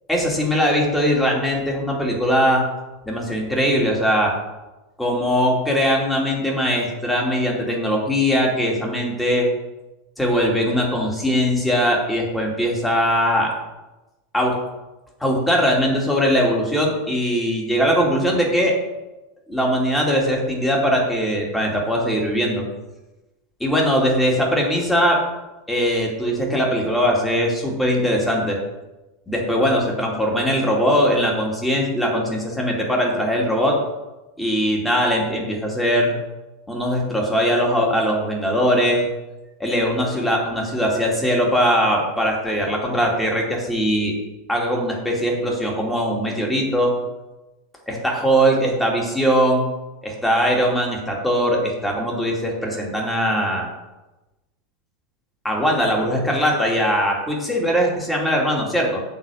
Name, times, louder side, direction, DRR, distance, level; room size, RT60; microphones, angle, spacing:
voice 1, 0.1-2.6 3.0-4.3 5.0-9.5 10.2-13.5 14.3-14.6 15.2-18.7 19.5-22.6 23.6-25.2 25.7-28.6 29.3-33.8 34.4-36.2 36.7-39.0 39.6-44.1 44.5-46.9 47.9-49.6 50.0-53.7 55.4-59.0, equal, 5° left, -1 dB, 2.7 m, -20 dB
8.1 x 4.4 x 7.0 m, 1.0 s
figure-of-eight pair, 85°, 0 cm